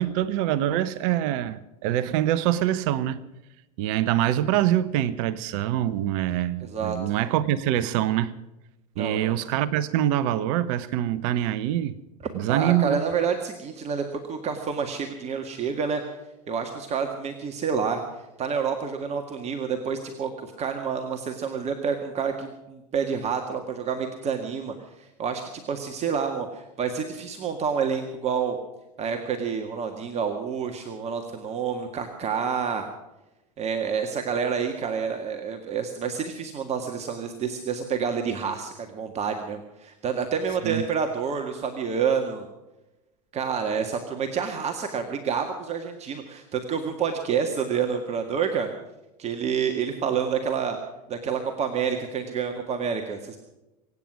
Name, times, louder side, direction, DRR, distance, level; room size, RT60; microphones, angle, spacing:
voice 1, 0.0-3.2 3.8-8.3 9.0-12.0 12.3-13.0 40.6-40.8, right 12 dB, 50° right, 1.0 m, -25 dB
voice 2, 6.6-7.0 9.0-9.4 12.5-16.0 16.5-18.0 18.4-28.6 29.0-32.9 33.6-42.5 43.3-48.7 49.2-50.8 51.1-53.4, right 6 dB, 30° right, 1.9 m, -28 dB
24.0 x 9.8 x 6.2 m
figure-of-eight pair, 85°, 21 cm